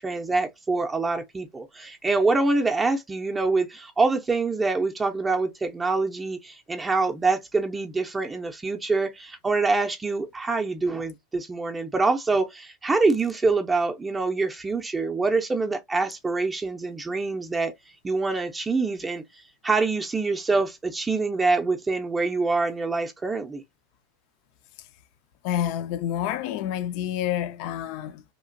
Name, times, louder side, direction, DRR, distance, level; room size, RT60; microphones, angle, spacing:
voice 1, 0.0-17.7 18.0-23.6, right 3 dB, 15° right, 0.5 m, -25 dB
voice 2, 25.4-28.2, left 11 dB, 60° left, 0.4 m, -28 dB
2.9 x 2.4 x 2.5 m
hypercardioid pair, 105°, 0 cm